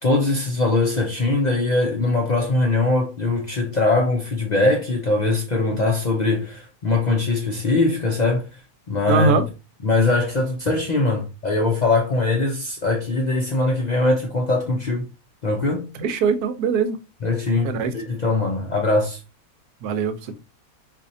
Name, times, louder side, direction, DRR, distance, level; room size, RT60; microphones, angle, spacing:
voice 1, 0.0-8.5 8.9-9.4 9.8-15.0 15.4-15.9 17.2-19.2, left 2 dB, 65° left, 0.4 m, -21 dB
voice 2, 9.1-9.4 16.0-17.0 17.6-17.9 19.8-20.4, right 4 dB, 80° right, 1.1 m, -21 dB
4.2 x 2.7 x 2.6 m
omnidirectional pair, 1.6 m